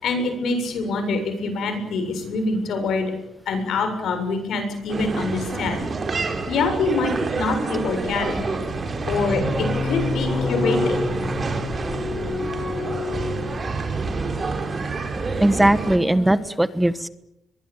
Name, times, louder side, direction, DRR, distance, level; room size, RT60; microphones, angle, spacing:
voice 1, 0.0-3.1 3.5-5.8 6.5-8.4 9.1-11.0, left 3 dB, 75° left, 7 dB, 7.3 m, -25 dB
sound 1, 4.9-16.0, right 3 dB, 35° right, 4.6 m, -28 dB
sound 2, 5.8-5.9 7.6-8.3 8.7-14.2 15.0-16.3, left 3 dB, 50° left, 5.8 m, -29 dB
voice 2, 15.4-17.1, right 1 dB, 10° right, 14 dB, 1.3 m, -19 dB
22.5 x 22.5 x 9.0 m, 0.84 s
cardioid pair, 100°, 0 cm